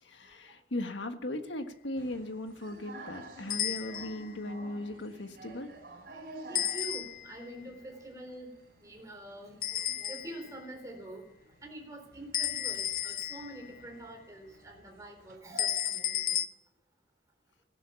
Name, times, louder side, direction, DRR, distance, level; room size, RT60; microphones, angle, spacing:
voice 1, 0.0-5.7, left 1 dB, 80° left, 7 dB, 1.6 m, -38 dB
sound 1, 2.0-15.4, right 2 dB, 55° right, 4.4 m, -52 dB
sound 2, 3.5-4.3 6.5-7.4 9.6-10.5 12.3-13.8 15.6-16.5, left 11 dB, 50° left, 0.6 m, -33 dB
voice 2, 6.5-11.3 11.6-16.4, right 1 dB, 20° right, 2 dB, 4.0 m, -46 dB
16.5 x 12.0 x 7.1 m, 0.76 s
head